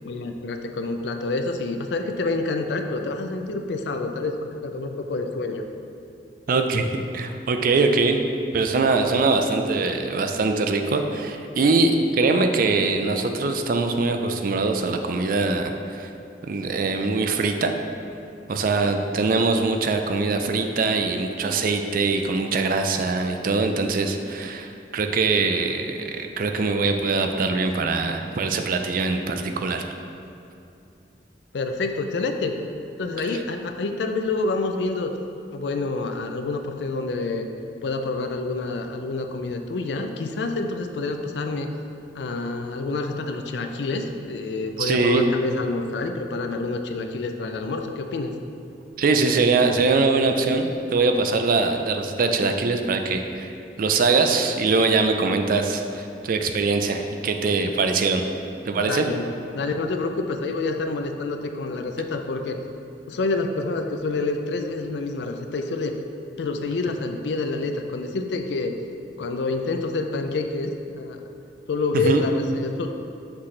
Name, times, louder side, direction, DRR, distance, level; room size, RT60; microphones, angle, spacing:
voice 1, 0.0-4.4 4.6-5.7 31.5-32.6 33.0-35.1 35.5-37.5 37.8-41.7 42.1-48.3 58.8-59.3 59.5-62.6 63.1-65.9 66.4-68.7 69.2-71.2 71.7-72.9, left 3 dB, 75° left, 5 dB, 0.4 m, -27 dB
voice 2, 6.5-8.2 8.5-16.1 16.4-17.7 18.5-29.9 44.8-45.3 49.0-53.5 53.8-58.2 58.6-59.1 71.9-72.2, right 3 dB, 50° right, 5 dB, 0.4 m, -22 dB
5.9 x 5.9 x 3.2 m, 2.7 s
head